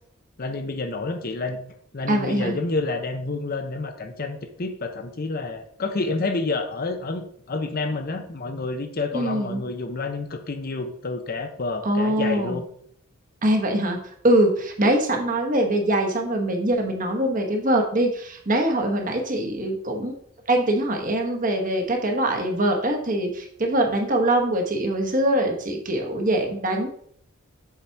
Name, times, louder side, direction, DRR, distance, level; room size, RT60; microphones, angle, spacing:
voice 1, 0.4-12.7, left 3 dB, 45° left, 7 dB, 0.7 m, -29 dB
voice 2, 2.1-2.5 9.1-9.6 11.8-12.6 13.4-14.0 14.2-20.1 20.5-26.9, right 1 dB, 40° right, 3 dB, 1.2 m, -23 dB
7.4 x 4.1 x 4.6 m, 0.64 s
head